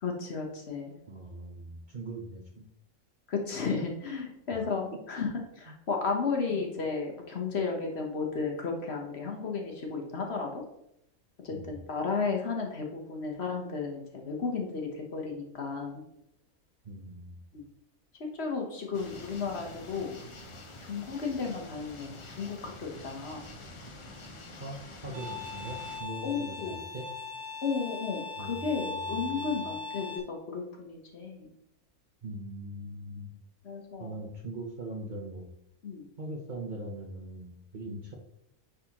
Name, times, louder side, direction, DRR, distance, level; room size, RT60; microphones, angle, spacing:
voice 1, 0.0-0.9 3.3-5.3 5.6-10.6 11.4-16.0 17.5-17.6 18.2-20.1 20.9-23.4 26.2-26.8 27.6-31.5 33.6-34.1 35.8-36.1, left 5 dB, 50° left, 1 dB, 1.2 m, -33 dB
voice 2, 1.1-2.6 4.5-4.6 5.7-5.8 6.5-6.6 11.5-11.8 16.8-17.4 24.6-27.1 28.4-29.7 32.2-33.3 34.0-35.5 36.2-38.1, right 1 dB, 40° right, 0 dB, 0.8 m, -41 dB
sound 1, 18.9-26.0, left 2 dB, 35° left, 0.5 m, -47 dB
Bowed string instrument, 25.1-30.2, left 4 dB, 70° right, 1.5 m, -39 dB
9.9 x 4.1 x 2.9 m, 0.79 s
omnidirectional pair, 1.5 m